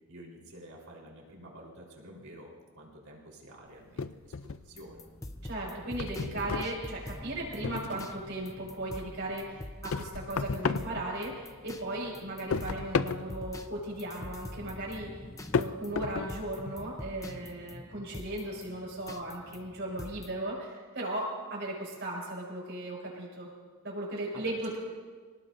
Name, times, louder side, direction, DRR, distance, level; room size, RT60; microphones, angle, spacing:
voice 1, 0.1-5.0 24.3-24.6, right 1 dB, 85° right, -2 dB, 4.1 m, -50 dB
sound 1, 4.0-5.0 5.4-8.3 8.6-11.7 12.0-16.9, left 5 dB, 75° left, 0.5 m, -34 dB
sound 2, 4.7-20.4, left 1 dB, 15° left, 0.6 m, -46 dB
voice 2, 5.4-23.5 23.8-24.8, right 1 dB, 55° right, -3 dB, 6.2 m, -37 dB
28.5 x 18.5 x 2.7 m, 1.5 s
head